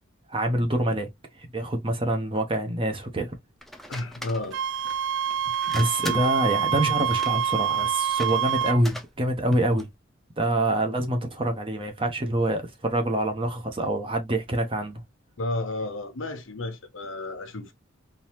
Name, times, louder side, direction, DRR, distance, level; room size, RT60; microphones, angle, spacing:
voice 1, 0.3-1.1 1.4-3.3 5.7-9.9 10.4-15.0, right 1 dB, 25° right, 0.9 m, -26 dB
sound 1, 3.6-10.0, left 1 dB, ahead, 0.5 m, -42 dB
voice 2, 3.9-4.6 15.4-17.7, left 2 dB, 80° left, 1.0 m, -32 dB
Wind instrument woodwind instrument, 4.5-8.8, right 8 dB, 65° right, 0.3 m, -26 dB
3.8 x 2.7 x 2.9 m
head